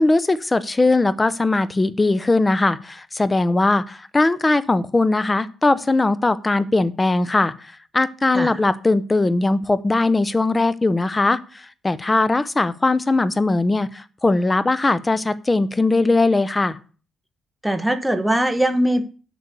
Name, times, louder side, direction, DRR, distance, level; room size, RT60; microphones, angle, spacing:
voice 1, 0.0-7.5 7.9-16.8, left 2 dB, 20° left, 16 dB, 0.8 m, -19 dB
voice 2, 17.6-19.1, right 1 dB, 5° right, 8 dB, 1.2 m, -21 dB
8.1 x 6.3 x 6.8 m, 0.38 s
cardioid pair, 90°, 0 cm